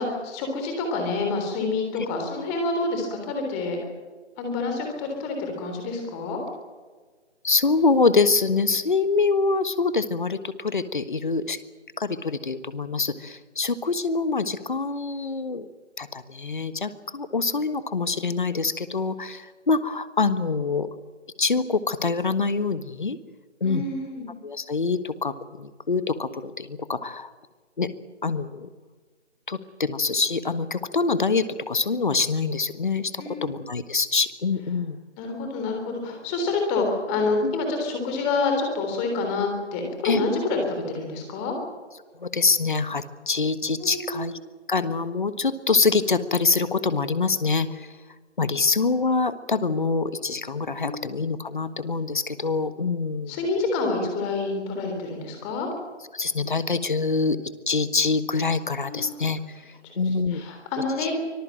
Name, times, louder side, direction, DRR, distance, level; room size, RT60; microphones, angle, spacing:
voice 1, 0.0-3.8 4.4-6.4 23.6-24.3 33.2-33.6 35.2-41.5 43.8-44.3 50.8-51.1 53.3-55.7 58.8-59.1 59.8-61.1, left 3 dB, 10° left, 3 dB, 3.5 m, -28 dB
voice 2, 7.4-11.6 12.0-15.6 16.0-20.9 21.4-23.2 23.6-23.8 24.4-27.3 27.8-27.9 28.2-28.7 29.5-35.0 37.4-37.5 40.0-40.2 42.2-44.4 44.7-47.9 48.4-53.4 56.1-57.4 57.7-59.4 60.0-60.4, left 4 dB, 45° left, 13 dB, 1.4 m, -25 dB
25.0 x 20.0 x 7.7 m, 1.4 s
figure-of-eight pair, 160°, 36 cm